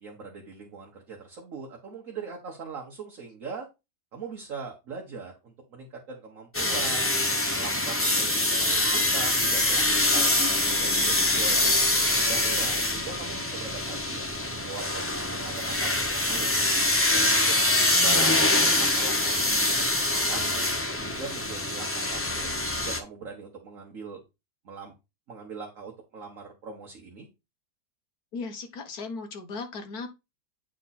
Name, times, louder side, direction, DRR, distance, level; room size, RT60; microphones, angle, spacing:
voice 1, 0.0-3.7 4.1-7.2 7.5-10.3 10.8-14.3 14.6-16.5 17.1-17.4 17.7-20.4 20.9-22.5 22.8-24.2 24.6-24.9 25.3-27.3, right 4 dB, 55° right, 1.4 m, -41 dB
sound 1, 6.5-23.0, left 2 dB, 15° left, 0.4 m, -24 dB
voice 2, 28.3-30.1, left 4 dB, 65° left, 1.6 m, -36 dB
8.8 x 3.6 x 4.1 m
omnidirectional pair, 1.8 m